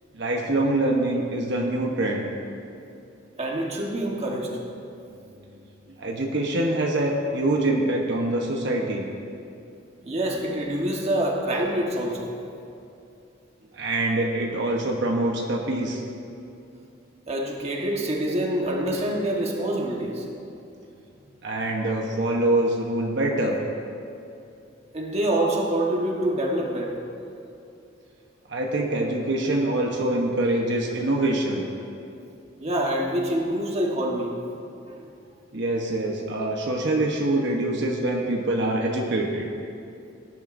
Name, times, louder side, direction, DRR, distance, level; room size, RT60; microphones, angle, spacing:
voice 1, 0.1-2.2 6.0-9.0 13.7-16.0 21.4-23.6 28.5-31.6 35.5-39.5, right 1 dB, 65° right, 0 dB, 1.0 m, -24 dB
voice 2, 3.4-4.5 10.0-12.3 17.3-20.2 24.9-27.0 32.6-34.3 34.9-35.0, right 1 dB, 35° right, -1 dB, 1.4 m, -26 dB
18.0 x 10.5 x 2.6 m, 2.7 s
head